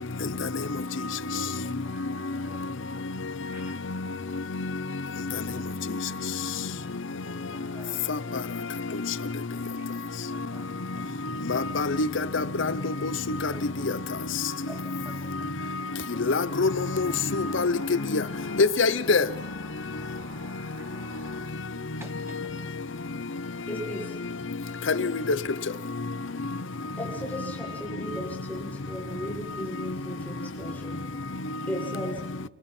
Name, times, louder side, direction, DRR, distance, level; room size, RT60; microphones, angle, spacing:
voice 1, 1.6-2.7 3.1-3.8 5.6-5.8 7.3-8.4 8.8-9.0 9.8-9.9 10.3-10.7 13.5-13.6 14.7-15.4 15.8-16.0 20.8-20.9 22.0-22.1 22.4-22.5, right 1 dB, 10° right, 1.0 m, -50 dB
voice 2, 11.5-12.1 12.3-13.1 13.4-13.5 13.8-13.9 16.3-17.7 18.1-18.2 18.6-19.2 24.9-25.1, left 4 dB, 70° left, 0.8 m, -24 dB
sound 1, 16.5-21.5, right 2 dB, 65° right, 3.3 m, -48 dB
voice 3, 23.7-24.2 27.0-31.0 31.7-32.2, left 1 dB, 10° left, 6.7 m, -36 dB
30.0 x 25.5 x 4.5 m
head